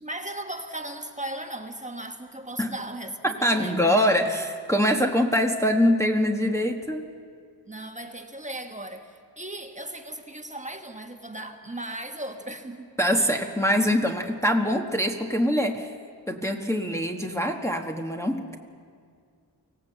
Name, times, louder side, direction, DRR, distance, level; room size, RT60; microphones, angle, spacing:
voice 1, 0.0-4.0 7.7-12.9 13.2-13.4, right 1 dB, 15° right, 5 dB, 1.4 m, -37 dB
voice 2, 3.2-7.1 13.0-15.9 16.3-18.6, equal, 5° left, 2 dB, 1.2 m, -24 dB
25.0 x 17.0 x 7.8 m, 2.1 s
wide cardioid pair, 110°, 43 cm